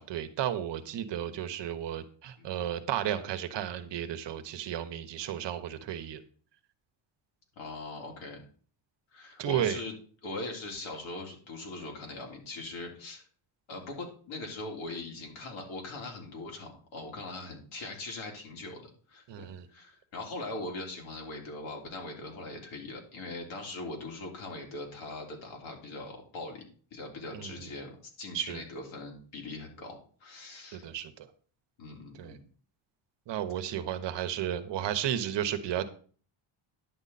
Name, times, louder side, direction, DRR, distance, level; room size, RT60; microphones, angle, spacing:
voice 1, 0.0-6.2 9.4-9.8 19.3-19.7 27.3-27.7 28.3-28.6 30.7-31.3 32.2-32.4 33.3-35.8, right 10 dB, 60° right, 9 dB, 1.2 m, -33 dB
voice 2, 7.6-8.4 9.1-9.9 10.2-13.2 13.7-26.6 26.9-30.9 31.8-32.4, left 2 dB, 65° left, 0 dB, 3.6 m, -41 dB
10.5 x 7.9 x 4.2 m, 0.43 s
cardioid pair, 135°, 49 cm